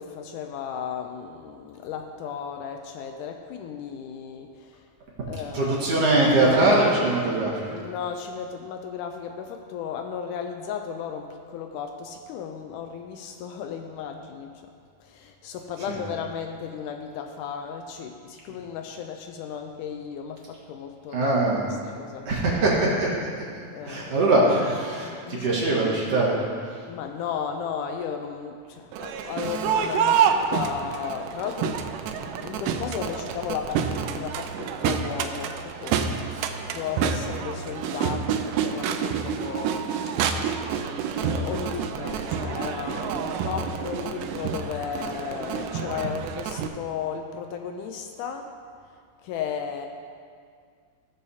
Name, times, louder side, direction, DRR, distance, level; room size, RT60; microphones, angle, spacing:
voice 1, 0.0-4.9 5.3-5.8 7.7-14.7 15.0-21.3 21.9-22.6 23.7-24.2 25.0-25.6 26.9-31.9 32.4-40.8 41.1-48.5 49.2-49.9, left 7 dB, 80° left, 5 dB, 1.9 m, -35 dB
voice 2, 5.5-7.7 15.9-16.0 21.1-21.7 22.3-23.1 23.8-26.4, right 2 dB, 50° right, -6 dB, 2.4 m, -22 dB
Crowd, 28.9-46.7, right 7 dB, 80° right, 2.1 m, -28 dB
16.5 x 7.2 x 2.8 m, 2.1 s
omnidirectional pair, 3.9 m